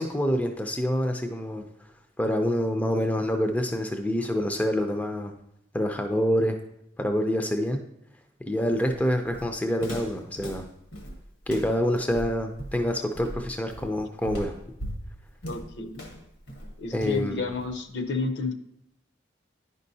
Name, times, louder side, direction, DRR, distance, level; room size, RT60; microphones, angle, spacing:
voice 1, 0.0-1.6 2.2-5.3 5.7-6.6 7.0-7.8 8.5-10.7 11.5-14.5 16.9-17.5, equal, 10° left, 5 dB, 0.4 m, -26 dB
Walk footsteps, 8.7-18.0, equal, 85° left, 1.2 m, -39 dB
voice 2, 15.5-16.0 16.8-18.5, left 3 dB, 60° left, 5 dB, 0.6 m, -30 dB
10.0 x 5.4 x 2.7 m, 0.79 s
head